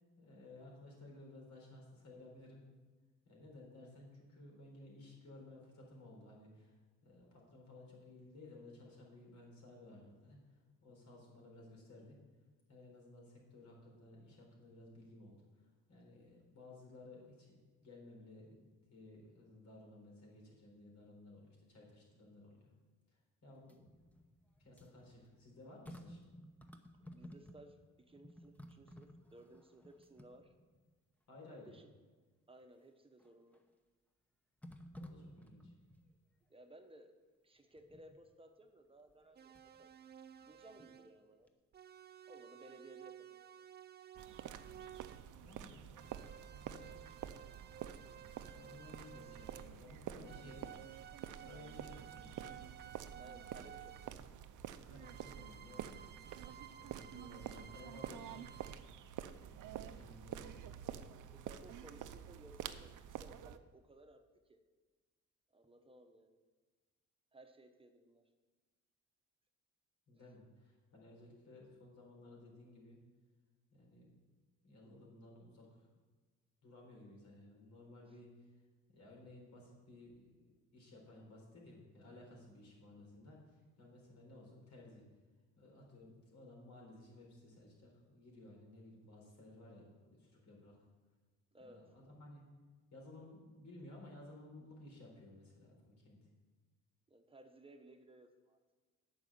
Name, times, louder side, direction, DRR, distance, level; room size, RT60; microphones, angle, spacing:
voice 1, 0.2-2.6 3.3-12.2 12.7-15.4 15.9-22.7 23.1-24.0 24.6-26.2 31.3-31.8 34.9-35.7 45.4-47.0 48.1-50.7 51.4-52.6 52.9-53.2 54.9-58.4 59.5-60.7 70.1-73.0 73.7-74.1 74.6-75.9 76.6-78.5 78.9-85.0 85.6-90.8 91.6-92.4 92.9-96.2, left 2 dB, 65° left, -1 dB, 4.1 m, -57 dB
sound 1, 23.5-27.8 28.1-30.9 31.4-31.5 33.2-33.7 34.6-36.1 37.8-38.2 39.1-39.8 40.2-41.2 41.5-41.6, equal, 5° left, 0.8 m, -56 dB
voice 2, 23.5-23.9 27.1-27.8 28.1-30.5 31.5-31.9 32.5-33.6 36.5-37.2 37.4-39.9 40.4-41.5 42.3-43.5 53.2-54.2 61.3-64.2 64.5-64.6 65.5-66.4 67.3-68.2 70.1-70.3 78.1-78.2 91.5-91.9 97.1-98.6, right 1 dB, 20° right, 6 dB, 1.0 m, -59 dB
sound 2, 39.4-41.2 41.7-45.3 45.9-49.9 50.2-54.2 55.0-58.8, right 9 dB, 35° right, 0.4 m, -55 dB
sound 3, 44.1-63.6, right 10 dB, 80° right, 0.6 m, -49 dB
9.1 x 6.3 x 8.4 m, 1.4 s
cardioid pair, 125°, 31 cm